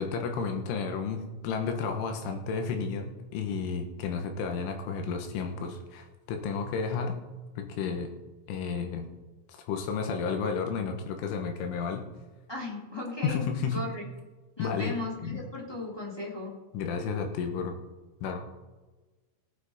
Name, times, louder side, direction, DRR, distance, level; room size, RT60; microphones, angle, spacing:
voice 1, 0.0-7.2 7.6-8.1 8.5-9.1 9.5-12.1 13.2-13.8 14.6-15.0 15.2-15.4 16.7-17.8 18.2-18.4, left 5 dB, 80° left, 5 dB, 3.7 m, -32 dB
voice 2, 12.5-14.1 14.6-16.5, left 2 dB, 10° left, -3 dB, 1.2 m, -37 dB
18.5 x 8.8 x 4.3 m, 1.2 s
omnidirectional pair, 5.7 m